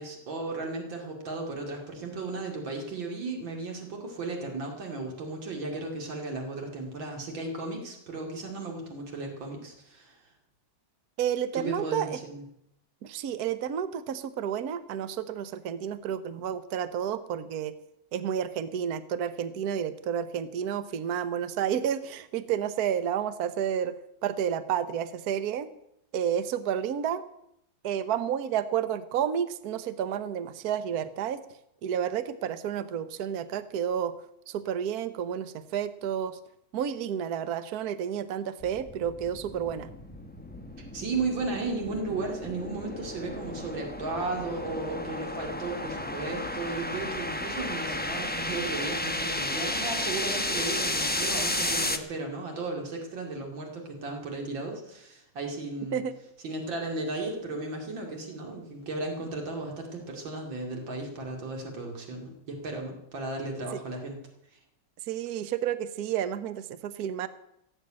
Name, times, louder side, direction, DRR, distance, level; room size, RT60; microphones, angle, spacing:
voice 1, 0.0-10.2 11.6-12.4 40.9-56.0 56.4-64.2, right 3 dB, 85° right, 1 dB, 3.2 m, -35 dB
voice 2, 11.2-12.2 13.0-17.7 18.1-23.9 24.2-25.7 26.1-27.2 27.8-31.4 31.8-34.1 34.5-36.4 36.7-39.9 55.9-56.2 65.1-67.3, right 9 dB, 60° right, 12 dB, 1.3 m, -30 dB
sound 1, 38.6-52.0, left 1 dB, 10° left, 0.7 m, -33 dB
17.0 x 8.0 x 8.7 m, 0.77 s
omnidirectional pair, 2.0 m